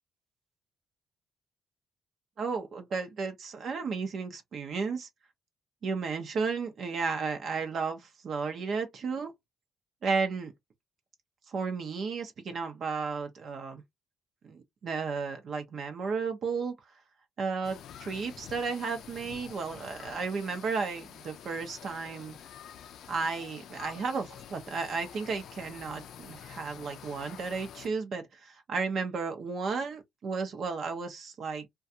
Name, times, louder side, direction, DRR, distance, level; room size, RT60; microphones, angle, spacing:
voice 1, 2.4-5.1 5.8-9.3 10.0-10.5 11.5-13.8 14.4-16.7 17.4-22.4 23.1-31.7, right 5 dB, 60° right, 0.7 m, -33 dB
sound 1, 17.6-27.9, left 9 dB, 75° left, 0.3 m, -48 dB
2.3 x 2.3 x 2.7 m
cardioid pair, 90°, 0 cm